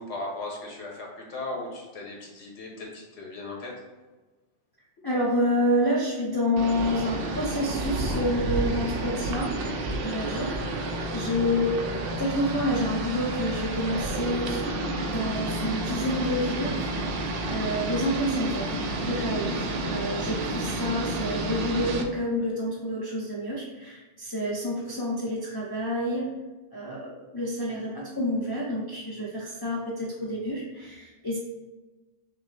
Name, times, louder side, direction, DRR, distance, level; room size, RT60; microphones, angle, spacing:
voice 1, 0.0-3.8, left 2 dB, 80° left, -1 dB, 1.4 m, -37 dB
voice 2, 5.0-9.5 10.0-10.8 11.1-11.8 12.2-14.8 15.0-18.7 19.0-26.3 26.7-31.4, equal, 30° left, -5 dB, 0.5 m, -28 dB
sound 1, 6.6-22.0, right 1 dB, 60° right, 0.7 m, -30 dB
5.7 x 2.0 x 3.2 m, 1.2 s
omnidirectional pair, 1.2 m